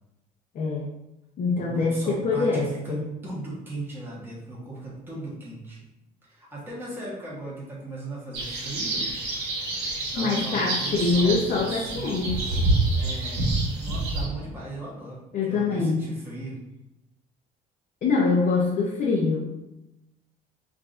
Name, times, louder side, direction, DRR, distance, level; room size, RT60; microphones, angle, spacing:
voice 1, 0.5-0.9 1.4-3.0 10.2-12.6 15.3-16.0 18.0-19.4, left 4 dB, 50° left, -2 dB, 0.7 m, -24 dB
voice 2, 1.5-5.8 6.2-9.1 10.1-12.4 13.0-13.5 13.8-15.2 15.5-16.6, right 2 dB, 10° right, -6 dB, 1.2 m, -37 dB
sound 1, 8.3-14.2, right 2 dB, 80° right, 1.4 m, -27 dB
4.7 x 2.5 x 2.5 m, 0.91 s
cardioid pair, 110°, 17 cm